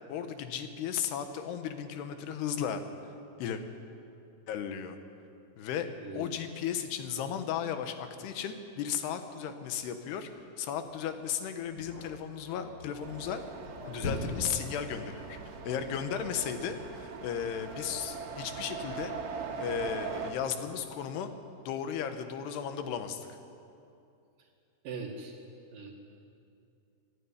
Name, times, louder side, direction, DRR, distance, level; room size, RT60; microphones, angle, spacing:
voice 1, 0.1-2.8 3.4-3.6 4.5-5.0 5.6-10.3 10.6-13.4 13.9-15.4 15.6-19.1 19.6-21.3 21.7-23.4, left 8 dB, 80° left, 8 dB, 3.2 m, -35 dB
voice 2, 6.0-6.3 24.8-25.3 25.7-25.9, right 4 dB, 60° right, -5 dB, 3.1 m, -40 dB
sound 1, 10.2-15.9, left 2 dB, 30° left, 5.5 m, -41 dB
sound 2, 13.0-20.3, right 5 dB, 90° right, 3.9 m, -41 dB
22.5 x 12.5 x 9.7 m, 2.6 s
omnidirectional pair, 4.7 m